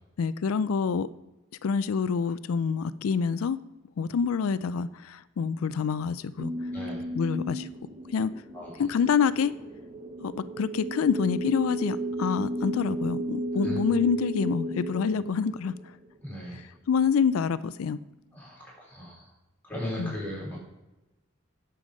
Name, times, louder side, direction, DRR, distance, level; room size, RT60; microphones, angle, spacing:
voice 1, 0.2-1.1 1.6-3.6 4.0-6.5 7.1-7.7 8.1-8.3 8.8-9.5 10.2-15.8 16.5-18.0 20.0-20.2, left 6 dB, 75° left, 16 dB, 0.4 m, -27 dB
sound 1, 6.4-16.2, right 1 dB, 25° right, 0.8 m, -34 dB
voice 2, 6.7-7.0 8.5-8.7 13.6-13.8 16.2-16.6 18.3-19.3 19.6-20.6, left 1 dB, 10° left, -6 dB, 4.0 m, -37 dB
9.7 x 7.0 x 5.1 m, 1.0 s
head